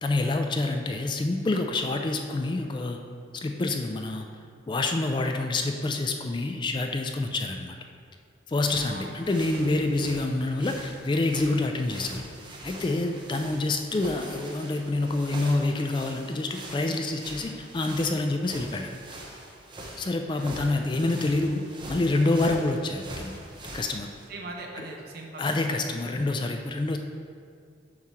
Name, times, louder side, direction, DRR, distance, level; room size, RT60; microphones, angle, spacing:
voice 1, 0.0-3.0 3.4-4.2 4.7-7.8 8.5-12.2 12.6-18.9 20.0-21.6 21.9-23.3 23.7-24.1 25.4-27.0, left 2 dB, 25° left, 5 dB, 0.3 m, -27 dB
sound 1, 8.5-24.2, right 1 dB, 25° right, 0.8 m, -43 dB
voice 2, 8.8-9.1 9.5-9.9 24.3-25.8, right 2 dB, 55° right, 1 dB, 0.8 m, -40 dB
7.3 x 3.1 x 5.7 m, 2.2 s
head